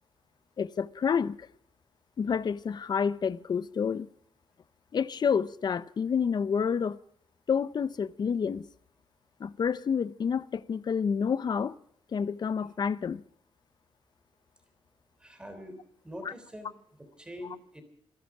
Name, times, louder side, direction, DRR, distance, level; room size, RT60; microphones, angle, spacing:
voice 1, 0.6-1.5 2.2-4.1 4.9-7.0 7.5-8.7 9.4-11.7 12.1-13.2 16.2-16.3, left 6 dB, 40° left, 0.6 m, -29 dB
voice 2, 15.2-15.7 16.0-16.7 17.0-17.8, equal, 10° right, 3.5 m, -44 dB
26.5 x 11.5 x 4.7 m
wide cardioid pair, 145°, 11 cm